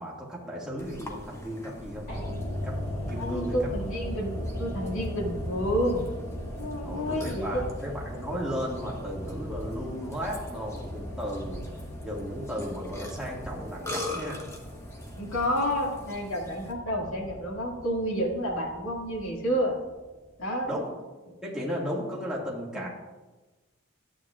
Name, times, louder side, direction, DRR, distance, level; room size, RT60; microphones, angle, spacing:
voice 1, 0.0-2.1 2.6-3.7 6.8-11.6 12.0-14.4 20.6-20.9 21.4-22.9, equal, 5° right, -5 dB, 2.0 m, -35 dB
Burping eructation, 0.8-16.7, left 1 dB, 15° left, 1.1 m, -43 dB
sound 1, 2.1-20.3 20.5-20.6, equal, 55° left, 3.2 m, -38 dB
voice 2, 3.1-6.0 6.6-7.7 15.2-19.7 20.4-20.7 22.7-22.9, equal, 75° left, -2 dB, 2.1 m, -30 dB
12.5 x 8.7 x 2.4 m, 1.2 s
head